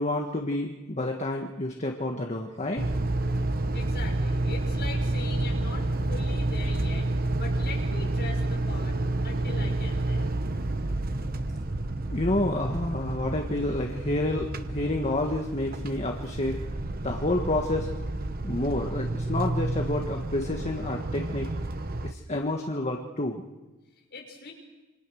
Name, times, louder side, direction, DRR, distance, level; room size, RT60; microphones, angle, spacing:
voice 1, 0.0-2.9 12.1-16.6 17.0-18.0 18.4-21.5 22.0-23.4, left 1 dB, 30° left, 2 dB, 1.7 m, -29 dB
sound 1, 2.8-22.1, right 2 dB, 40° right, 1.0 m, -30 dB
voice 2, 3.7-7.1 7.3-9.0 9.2-10.3 24.1-24.5, left 3 dB, 50° left, 0 dB, 6.3 m, -41 dB
sound 2, 11.1-22.5, equal, 10° right, 1.1 m, -44 dB
28.5 x 25.0 x 6.5 m, 1.2 s
head